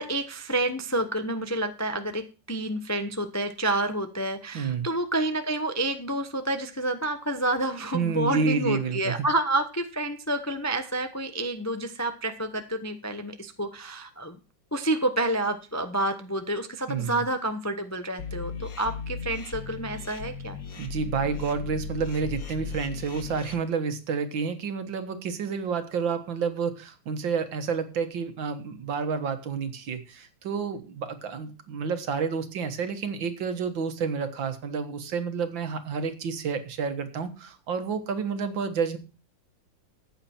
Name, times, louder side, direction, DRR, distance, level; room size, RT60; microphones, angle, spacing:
voice 1, 0.0-14.4 14.7-20.6, right 1 dB, 20° left, 8 dB, 0.4 m, -29 dB
voice 2, 4.5-4.9 7.9-9.1 16.9-17.2 20.8-39.0, right 5 dB, 80° right, 9 dB, 2.1 m, -29 dB
sound 1, 18.2-23.5, left 6 dB, 50° left, 1.9 m, -37 dB
14.0 x 8.7 x 4.4 m, 0.33 s
omnidirectional pair, 2.0 m